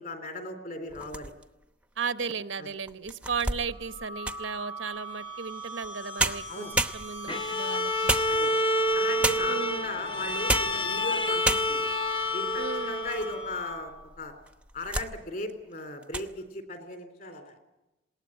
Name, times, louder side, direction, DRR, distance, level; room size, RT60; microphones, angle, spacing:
voice 1, 0.0-1.3 2.6-2.7 6.5-6.7 8.3-8.5 8.9-11.9 12.3-13.9 14.2-14.3 14.7-17.5, left 2 dB, 45° left, 6 dB, 3.7 m, -37 dB
sound 1, 0.9-1.6 2.2-2.3 2.9-4.6 5.8-5.9 6.2-7.4 8.1-8.8 9.2-9.7 10.3-10.8 11.1-11.2 11.4-12.0 12.6-13.4 13.7-13.8 14.5-15.1 15.5-15.7 16.0-16.3, right 2 dB, 5° right, 0.8 m, -30 dB
voice 2, 2.0-8.2 9.5-10.0 12.6-13.0, right 5 dB, 70° right, 11 dB, 0.9 m, -35 dB
sound 2, 3.7-14.1, right 2 dB, 85° left, 7.6 m, -40 dB
Bowed string instrument, 7.3-13.6, left 1 dB, 25° left, 0.9 m, -28 dB
20.0 x 18.5 x 9.8 m, 1.0 s
head